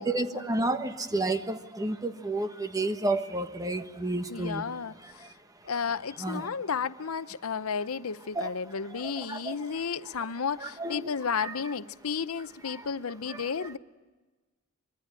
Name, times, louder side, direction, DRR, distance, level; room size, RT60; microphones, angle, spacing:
voice 1, 0.0-4.6 5.0-5.3 6.2-6.5 8.3-8.5 8.9-9.6 10.6-11.1 11.4-11.5 12.7-12.8 13.3-13.5, right 2 dB, 15° right, 1.4 m, -31 dB
voice 2, 4.3-5.3 5.6-13.8, left 6 dB, 80° left, 0.7 m, -33 dB
25.0 x 23.0 x 9.0 m
head